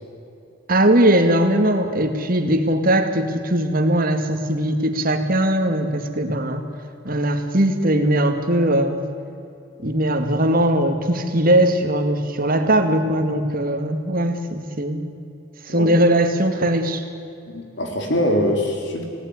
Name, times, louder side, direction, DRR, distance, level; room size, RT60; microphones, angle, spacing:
voice 1, 0.7-6.6 7.0-9.0 9.8-15.1 15.7-17.0, right 1 dB, 45° right, 6 dB, 2.3 m, -20 dB
voice 2, 17.5-19.1, left 1 dB, 60° left, 3 dB, 3.7 m, -23 dB
29.5 x 18.5 x 9.8 m, 2.7 s
head